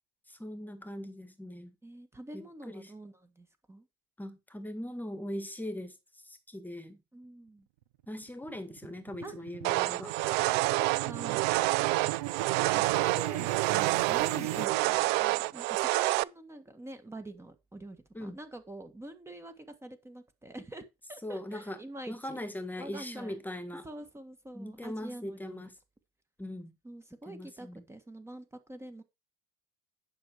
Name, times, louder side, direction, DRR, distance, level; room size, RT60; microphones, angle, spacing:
voice 1, 0.3-1.7 2.3-2.9 4.2-6.0 6.2-7.0 8.1-10.1 14.3-14.7 18.1-18.4 21.2-21.8 22.1-23.8 24.5-25.7 26.4-26.7 27.3-27.8, left 1 dB, 10° left, 1.7 m, -40 dB
voice 2, 1.8-3.9 7.1-7.7 9.2-9.3 9.7-11.4 12.7-22.4 22.8-23.4 23.8-25.6 26.8-29.0, right 2 dB, 10° right, 1.6 m, -46 dB
sound 1, 8.2-15.5, right 15 dB, 70° right, 0.8 m, -37 dB
sound 2, 9.6-16.2, right 20 dB, 55° right, 0.4 m, -28 dB
10.5 x 5.9 x 4.8 m
hypercardioid pair, 75°, 21 cm